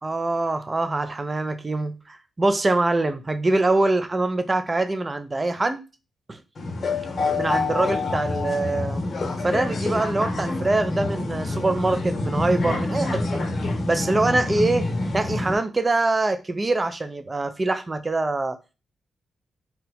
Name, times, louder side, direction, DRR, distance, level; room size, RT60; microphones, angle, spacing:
voice 1, 0.0-5.8 6.3-6.4 7.4-9.0 9.4-13.4 13.9-14.9 15.1-18.6, right 2 dB, 25° right, 0.5 m, -24 dB
sound 1, 6.6-15.5, left 2 dB, 45° left, 0.8 m, -27 dB
2.8 x 2.2 x 4.1 m
cardioid pair, 90°, 0 cm